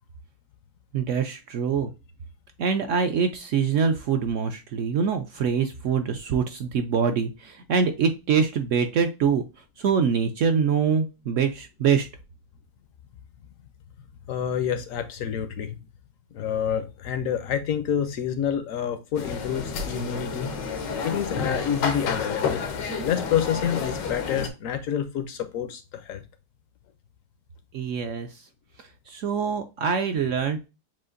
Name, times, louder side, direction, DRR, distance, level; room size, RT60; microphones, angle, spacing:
voice 1, 0.9-1.9 2.6-9.5 9.8-12.1 27.7-28.4 28.8-30.7, right 6 dB, 75° right, 0.7 m, -24 dB
voice 2, 14.3-15.8 16.3-20.5 21.0-22.7 23.0-26.2, left 9 dB, 70° left, 0.8 m, -28 dB
sound 1, 19.1-24.5, left 5 dB, 90° left, 1.6 m, -30 dB
7.5 x 2.5 x 2.5 m
omnidirectional pair, 1.9 m